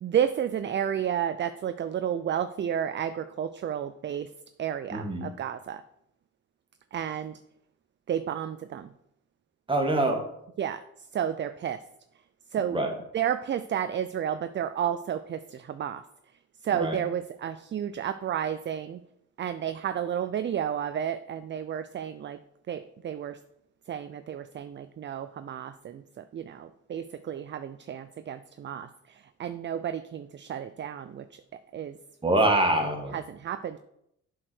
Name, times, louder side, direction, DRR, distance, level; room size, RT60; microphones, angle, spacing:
voice 1, 0.0-4.3 4.6-5.8 6.9-7.4 8.1-8.9 10.6-10.8 11.1-11.8 12.5-12.8 13.1-16.0 16.6-19.0 19.4-22.4 22.7-23.4 23.9-31.4 31.7-32.0 33.1-33.8, right 9 dB, 40° right, 11 dB, 0.4 m, -31 dB
voice 2, 4.9-5.3 9.7-10.2 12.7-12.9 16.7-17.0 32.2-33.1, right 2 dB, 15° right, 2 dB, 1.9 m, -24 dB
7.5 x 4.7 x 6.3 m, 0.77 s
cardioid pair, 90°, 30 cm